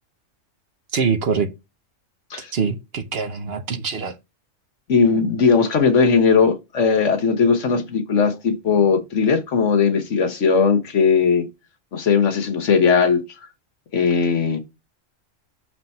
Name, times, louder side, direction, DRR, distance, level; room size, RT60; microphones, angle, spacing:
voice 1, 0.9-1.5 2.5-4.1, right 5 dB, 55° right, 1.0 m, -24 dB
voice 2, 4.9-11.5 11.9-13.2 13.9-14.6, left 5 dB, 70° left, 1.4 m, -18 dB
5.9 x 3.5 x 5.4 m
omnidirectional pair, 1.3 m